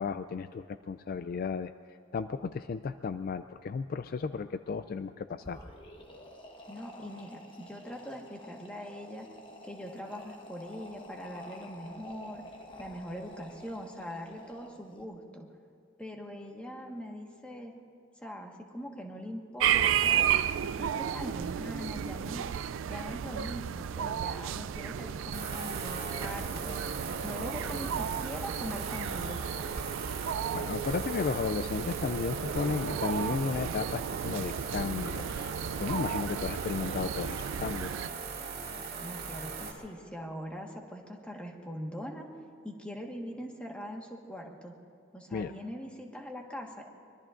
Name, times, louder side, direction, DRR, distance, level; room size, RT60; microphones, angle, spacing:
voice 1, 0.0-1.7 2.1-5.6 30.5-35.5 35.8-37.9 45.3-45.5, left 5 dB, 45° left, 11 dB, 0.3 m, -34 dB
sound 1, 5.3-15.0, left 1 dB, 25° left, 1.2 m, -50 dB
voice 2, 6.7-9.3 9.6-12.4 12.8-15.5 16.0-17.7 18.2-22.4 22.9-26.8 27.2-29.4 39.0-42.3 42.6-44.7 45.1-46.9, equal, 5° left, 1 dB, 1.4 m, -42 dB
sound 2, 19.6-38.1, right 9 dB, 70° right, 0.3 m, -33 dB
sound 3, 25.3-39.7, right 4 dB, 50° right, 2.2 m, -39 dB
24.5 x 21.5 x 2.5 m, 2.3 s
head